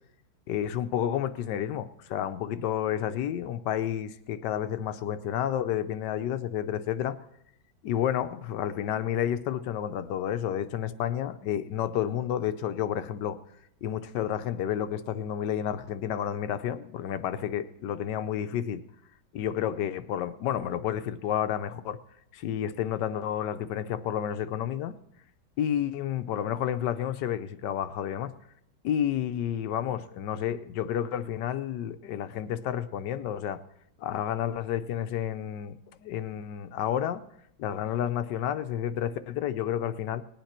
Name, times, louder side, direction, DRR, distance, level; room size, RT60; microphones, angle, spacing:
voice 1, 0.5-7.2 7.8-13.4 13.8-18.8 19.3-22.0 22.3-24.9 25.6-28.3 28.8-33.6 34.0-37.2 37.6-40.2, left 10 dB, 75° left, 11 dB, 1.3 m, -30 dB
19.0 x 9.1 x 4.3 m, 0.78 s
omnidirectional pair, 1.9 m